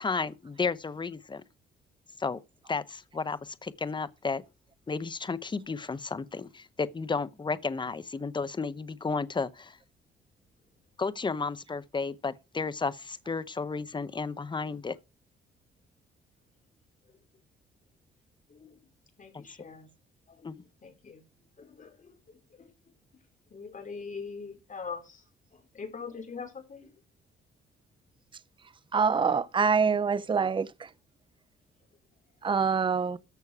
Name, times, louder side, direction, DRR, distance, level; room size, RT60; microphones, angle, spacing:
voice 1, 0.0-1.4 2.2-2.4 2.7-4.4 4.9-9.8 11.0-15.0 20.4-20.6, left 4 dB, 25° left, 0.9 m, -33 dB
voice 2, 19.2-19.9 20.3-21.2 21.6-22.7 23.5-25.2 25.5-26.9, left 5 dB, 40° left, 4.9 m, -43 dB
voice 3, 28.9-30.9 32.4-33.2, right 5 dB, 25° right, 0.7 m, -25 dB
14.0 x 6.3 x 4.8 m
cardioid pair, 90°, 20 cm